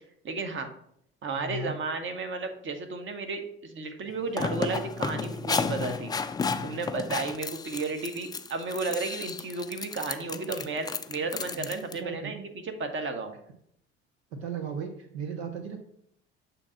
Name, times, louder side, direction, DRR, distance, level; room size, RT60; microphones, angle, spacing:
voice 1, 0.2-0.7 1.2-6.1 6.6-13.4, right 3 dB, 40° right, 7 dB, 1.0 m, -33 dB
voice 2, 1.4-1.8 10.3-10.7 11.3-12.4 14.3-15.8, right 5 dB, 80° right, 6 dB, 0.7 m, -37 dB
sound 1, 4.1-12.0, left 5 dB, 15° left, 0.3 m, -32 dB
6.9 x 2.8 x 5.5 m, 0.70 s
hypercardioid pair, 60°, 31 cm